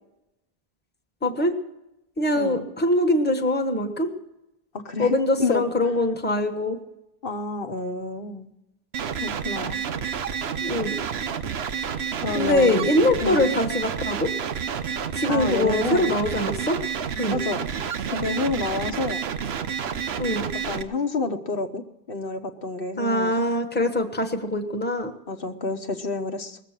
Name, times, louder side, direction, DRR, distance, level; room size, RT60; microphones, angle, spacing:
voice 1, 1.2-1.5 2.2-4.1 5.0-6.8 10.6-11.0 12.3-14.3 15.2-16.8 17.2-17.4 20.2-20.5 23.0-25.1, left 1 dB, 10° left, 3 dB, 1.2 m, -23 dB
voice 2, 4.7-5.7 7.2-8.5 9.2-9.8 12.2-13.6 15.3-16.2 17.3-17.7 18.1-19.2 20.6-21.8 22.1-23.3 25.3-26.6, left 3 dB, 65° left, 5 dB, 1.2 m, -29 dB
sound 1, 8.9-20.8, right 7 dB, 85° right, 1.0 m, -29 dB
20.0 x 7.5 x 7.4 m, 0.91 s
omnidirectional pair, 1.0 m